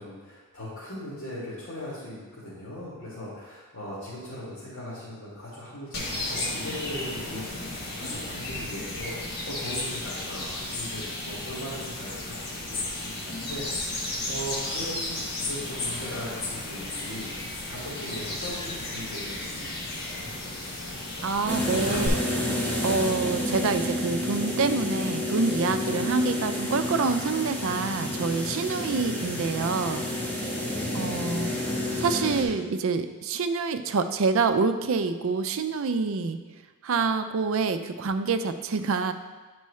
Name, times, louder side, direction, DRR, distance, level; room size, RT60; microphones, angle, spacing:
voice 1, 0.0-17.3 17.7-19.7 20.0-20.4 28.7-28.9 30.5-31.2, equal, 75° left, -10 dB, 2.0 m, -39 dB
sound 1, 5.9-22.1, left 2 dB, 50° left, 1.2 m, -34 dB
voice 2, 21.2-22.2 22.8-30.0 30.9-31.5 32.0-36.4 36.8-39.1, right 4 dB, 65° right, 9 dB, 0.4 m, -27 dB
sound 2, 21.5-32.4, left 1 dB, 5° left, 1.0 m, -29 dB
9.5 x 4.6 x 3.2 m, 1.3 s
head